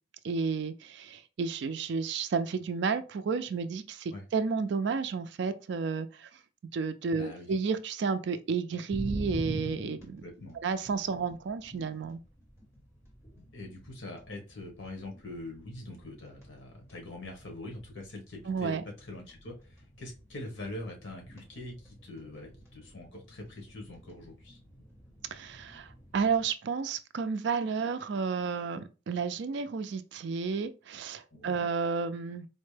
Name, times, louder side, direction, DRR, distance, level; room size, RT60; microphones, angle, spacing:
voice 1, 0.2-6.3 6.7-10.2 10.6-12.2 18.5-18.8 25.3-32.5, right 5 dB, 60° right, 0.3 m, -32 dB
voice 2, 7.2-7.5 10.2-10.6 13.5-24.6 31.3-31.7, left 2 dB, 75° left, 1.2 m, -43 dB
sound 1, 8.9-26.5, equal, 15° left, 1.3 m, -47 dB
4.2 x 2.1 x 3.2 m
head